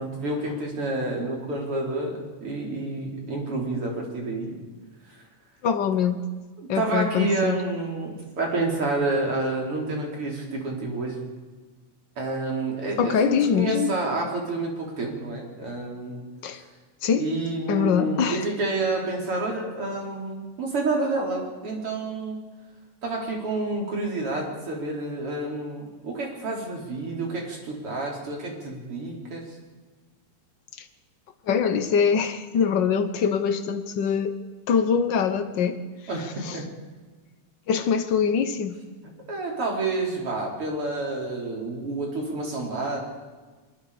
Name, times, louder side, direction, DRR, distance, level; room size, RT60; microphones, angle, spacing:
voice 1, 0.0-4.5 6.7-11.2 12.2-16.2 17.1-22.4 23.0-29.5 36.1-36.6 39.3-43.0, right 2 dB, 45° right, -1 dB, 4.7 m, -29 dB
voice 2, 5.6-6.2 6.7-7.6 13.0-13.9 16.4-16.6 17.0-17.3 17.7-18.4 31.5-34.4 34.7-35.8 36.4-36.6 37.7-38.8, left 7 dB, 60° left, 9 dB, 1.2 m, -23 dB
24.5 x 21.5 x 5.0 m, 1.3 s
omnidirectional pair, 3.4 m